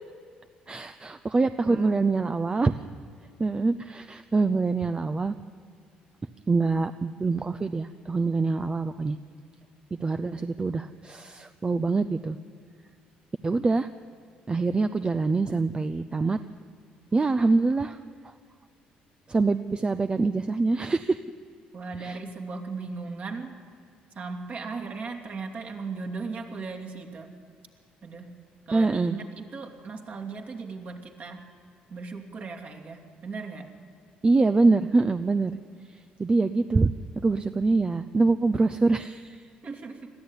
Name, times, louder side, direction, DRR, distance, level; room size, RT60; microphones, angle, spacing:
voice 1, 0.7-2.7 3.4-5.3 6.5-9.2 10.0-12.4 13.4-13.9 14.5-16.4 17.1-18.0 19.3-21.2 22.0-22.2 28.7-29.2 34.2-35.5 36.2-36.9 37.2-39.4, right 3 dB, 25° right, 10 dB, 0.7 m, -24 dB
voice 2, 1.6-2.1 21.7-23.5 24.1-27.3 28.0-28.3 28.7-31.4 31.9-33.7 39.6-40.1, right 4 dB, 50° right, 3 dB, 2.9 m, -37 dB
21.0 x 14.0 x 9.9 m, 2.2 s
hypercardioid pair, 60°, 3 cm